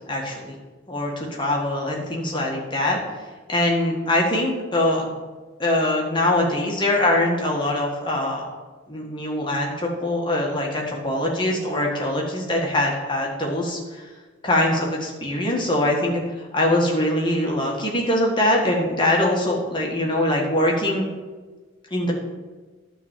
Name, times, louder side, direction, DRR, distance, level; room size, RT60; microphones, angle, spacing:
voice 1, 0.1-0.5 0.9-3.0 3.5-5.1 5.6-8.4 8.9-14.0 14.4-21.1 21.9-22.1, left 1 dB, 20° left, -1 dB, 1.7 m, -23 dB
12.0 x 4.0 x 7.4 m, 1.3 s
head